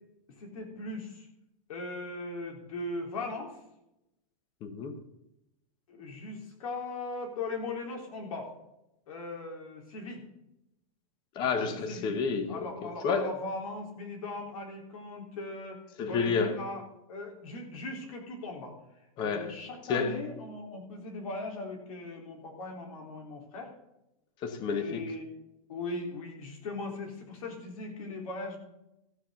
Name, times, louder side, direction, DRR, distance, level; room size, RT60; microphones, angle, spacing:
voice 1, 0.4-1.3 1.7-3.6 5.9-8.5 9.1-10.2 11.4-11.5 11.9-12.1 12.5-15.8 16.1-16.8 17.1-18.8 19.2-23.7 24.7-25.2 25.7-28.6, left 2 dB, 75° left, 2 dB, 3.6 m, -39 dB
voice 2, 4.6-5.0 11.3-13.3 16.0-16.6 19.2-19.6 19.9-20.3 24.4-25.0, left 5 dB, 25° left, 9 dB, 1.0 m, -30 dB
14.5 x 6.1 x 6.9 m, 0.87 s
supercardioid pair, 175°, 18 cm